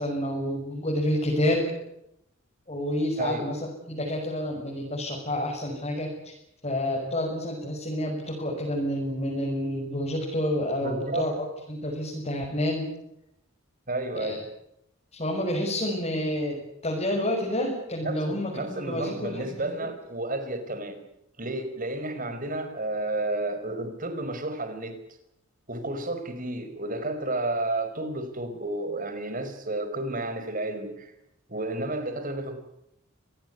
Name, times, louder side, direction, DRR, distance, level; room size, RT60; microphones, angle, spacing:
voice 1, 0.0-1.6 2.7-3.6 3.9-6.3 6.6-12.9 14.1-14.4 15.1-16.6 16.8-19.9, left 1 dB, 30° left, -2 dB, 6.8 m, -29 dB
voice 2, 3.2-3.5 10.8-11.3 13.9-14.4 18.0-21.0 21.4-25.0 25.7-31.1 31.5-32.6, right 2 dB, 40° right, 8 dB, 5.2 m, -31 dB
26.0 x 19.5 x 9.7 m, 0.80 s
head